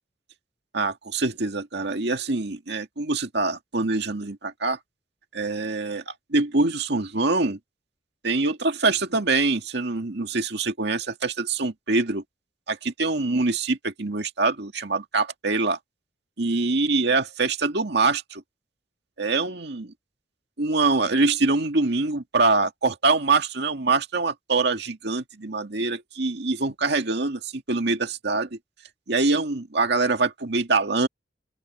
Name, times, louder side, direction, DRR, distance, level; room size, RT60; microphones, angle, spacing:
voice 1, 0.7-4.8 5.3-7.6 8.2-12.2 12.7-15.8 16.4-18.4 19.2-19.9 20.6-28.6 29.1-31.1, right 3 dB, 65° right, 2.1 m, -24 dB
open air
head